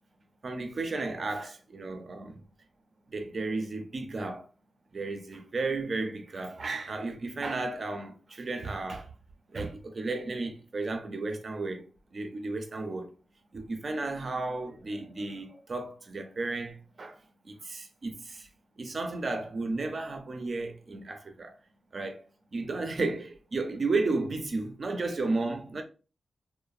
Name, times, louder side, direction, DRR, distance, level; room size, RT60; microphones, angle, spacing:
voice 1, 0.4-2.4 3.1-4.5 4.9-9.1 9.5-13.1 13.5-18.5 18.8-21.6 21.9-22.3 22.5-25.8, right 3 dB, 55° right, 0.5 m, -33 dB
3.1 x 2.1 x 2.4 m
cardioid pair, 70°, 0 cm